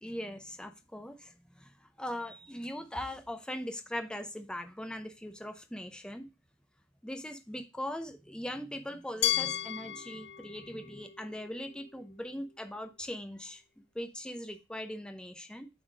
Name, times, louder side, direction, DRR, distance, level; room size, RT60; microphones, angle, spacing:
voice 1, 0.0-6.3 7.0-13.6 13.9-15.7, left 1 dB, 5° left, 0.6 m, -40 dB
Glass, 9.2-12.1, left 13 dB, 70° left, 0.5 m, -35 dB
7.4 x 3.6 x 4.6 m
head